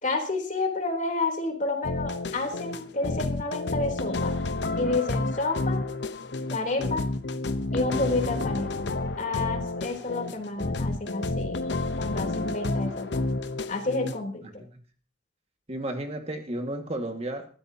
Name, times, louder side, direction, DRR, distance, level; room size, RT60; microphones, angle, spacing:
voice 1, 0.0-4.3 4.8-5.8 6.5-7.1 7.7-8.9 9.2-11.6 12.0-13.1 13.7-14.6, left 3 dB, 40° left, 3 dB, 3.5 m, -30 dB
sound 1, 1.8-14.2, left 2 dB, 65° left, 0.9 m, -30 dB
voice 2, 15.7-17.5, right 1 dB, 35° right, 4 dB, 1.8 m, -33 dB
20.0 x 15.0 x 2.8 m, 0.41 s
head